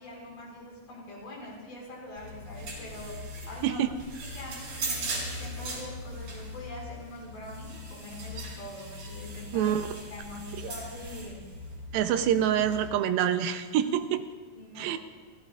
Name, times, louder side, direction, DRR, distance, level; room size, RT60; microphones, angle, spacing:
voice 1, 0.0-3.8 4.2-9.8 10.1-11.4 14.6-15.0, left 1 dB, 90° left, -4 dB, 7.1 m, -44 dB
sound 1, 2.2-12.9, right 1 dB, 60° right, 4.9 m, -39 dB
voice 2, 9.5-9.9 11.9-14.3 14.8-15.0, right 10 dB, 85° right, 9 dB, 2.6 m, -26 dB
28.5 x 15.5 x 2.5 m, 1.3 s
omnidirectional pair, 4.1 m